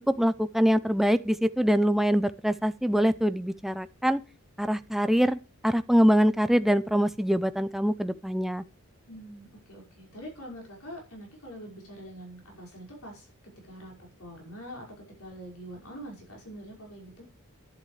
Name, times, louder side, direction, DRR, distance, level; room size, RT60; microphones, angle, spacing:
voice 1, 0.1-4.2 4.6-8.6, equal, ahead, 0.5 m, -24 dB
voice 2, 9.1-13.3 13.7-17.3, equal, 80° left, 5.4 m, -44 dB
11.5 x 11.0 x 3.3 m
head